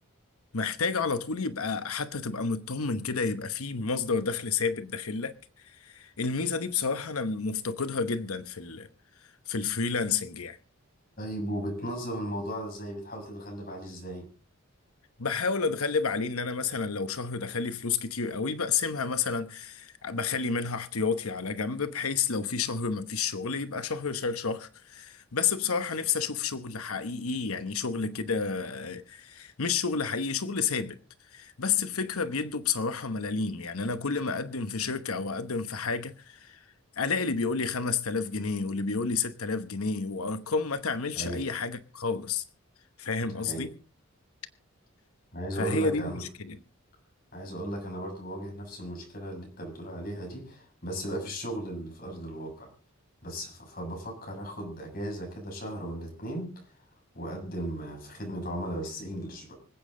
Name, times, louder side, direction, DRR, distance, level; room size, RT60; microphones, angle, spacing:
voice 1, 0.5-5.3 5.6-8.9 9.5-10.6 15.2-31.0 31.3-36.6 37.0-42.4 43.0-43.7 45.6-46.6, left 5 dB, 90° left, 1.0 m, -30 dB
voice 2, 11.2-14.3 41.1-41.5 43.3-43.7 45.3-46.2 47.3-52.7 53.2-56.6 57.1-59.5, right 1 dB, 45° left, 6.5 m, -36 dB
25.5 x 8.7 x 3.8 m
head